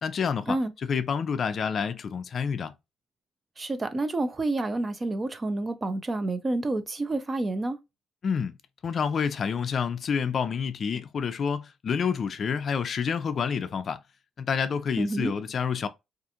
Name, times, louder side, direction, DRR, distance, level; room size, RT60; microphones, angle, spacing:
voice 1, 0.0-0.6 0.9-2.7 8.2-8.6 8.8-14.0 14.4-15.9, left 6 dB, 50° left, 0.3 m, -28 dB
voice 2, 3.6-7.8 15.0-15.3, right 2 dB, 30° right, 0.5 m, -29 dB
2.4 x 2.4 x 2.7 m
cardioid pair, 90°, 0 cm